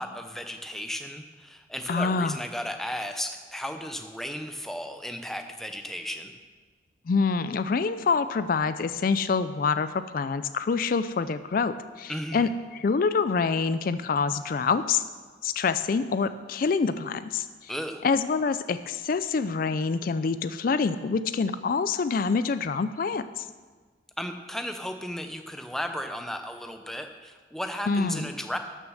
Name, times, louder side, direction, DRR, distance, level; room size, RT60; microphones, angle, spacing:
voice 1, 0.0-6.3 12.1-12.5 17.7-18.0 24.2-28.6, equal, ahead, 6 dB, 0.7 m, -35 dB
voice 2, 1.9-2.4 7.1-15.0 15.4-17.7 18.0-23.5 27.9-28.2, left 5 dB, 50° left, 13 dB, 0.4 m, -26 dB
12.5 x 6.4 x 6.4 m, 1.4 s
head